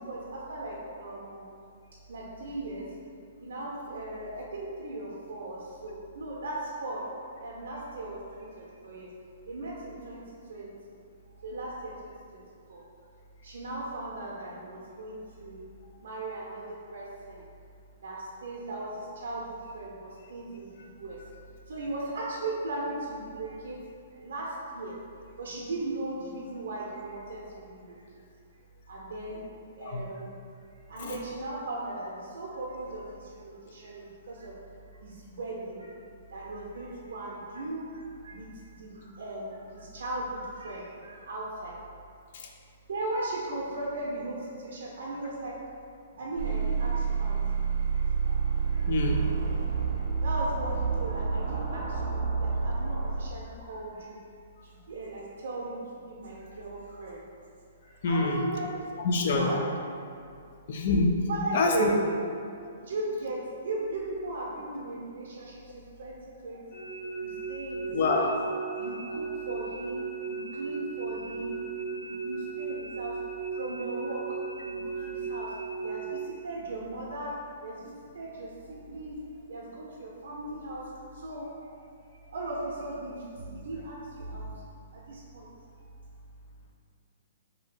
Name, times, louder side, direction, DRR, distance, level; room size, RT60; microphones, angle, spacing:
voice 1, 0.0-3.0 3.4-9.1 9.4-11.0 11.3-12.4 12.7-12.8 13.4-15.7 16.0-17.4 18.0-21.2 21.7-23.8 24.1-25.0 25.4-28.2 28.9-29.4 29.8-34.6 34.9-35.9 36.3-41.8 42.9-45.6 46.2-47.4 47.9-48.9 50.2-54.2 54.6-57.3 57.8-58.8 59.2-59.6 61.3-62.1 62.8-66.7 67.1-68.4 68.8-71.6 71.9-79.2 79.5-85.5 85.8-85.9, right 2 dB, 80° right, -4 dB, 0.6 m, -38 dB
sound 1, 46.4-53.3, right 5 dB, 35° right, 0.6 m, -29 dB
voice 2, 48.9-49.2 58.0-58.5 59.0-59.5 60.7-61.2 61.5-61.9 67.9-68.3 75.0-75.1, left 3 dB, 55° left, 2 dB, 0.4 m, -26 dB
sound 2, 66.7-76.1, right 5 dB, 35° left, 1.4 m, -36 dB
2.7 x 2.6 x 3.7 m, 2.3 s
hypercardioid pair, 155°, 0 cm